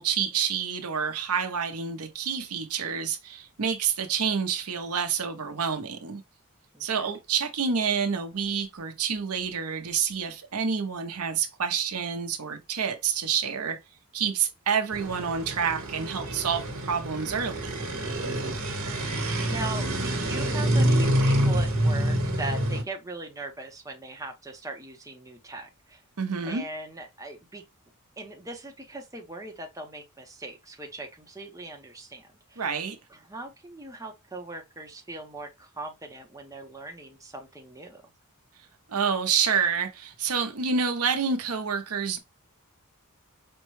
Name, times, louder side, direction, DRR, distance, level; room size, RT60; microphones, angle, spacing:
voice 1, 0.0-6.2 6.8-13.8 14.1-17.9 26.2-26.6 32.6-33.0 38.9-42.2, right 6 dB, 85° right, 0.8 m, -28 dB
voice 2, 6.7-7.1 18.7-26.0 26.4-27.6 28.2-32.6 33.1-38.0, right 2 dB, 15° right, 0.7 m, -40 dB
sound 1, 14.9-22.8, right 1 dB, 65° right, 1.3 m, -27 dB
5.2 x 2.2 x 3.1 m
head